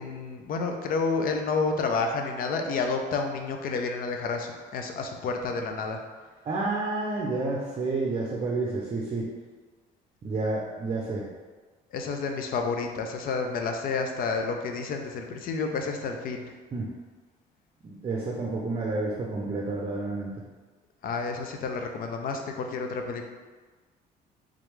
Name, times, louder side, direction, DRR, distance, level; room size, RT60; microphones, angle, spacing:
voice 1, 0.0-6.0 11.9-16.4 21.0-23.2, left 4 dB, 60° left, 4 dB, 0.6 m, -30 dB
voice 2, 6.4-9.3 10.2-11.3 16.7-16.9 17.8-20.4, right 3 dB, 35° right, -2 dB, 0.6 m, -30 dB
3.6 x 3.3 x 3.1 m, 1.3 s
cardioid pair, 110°, 17 cm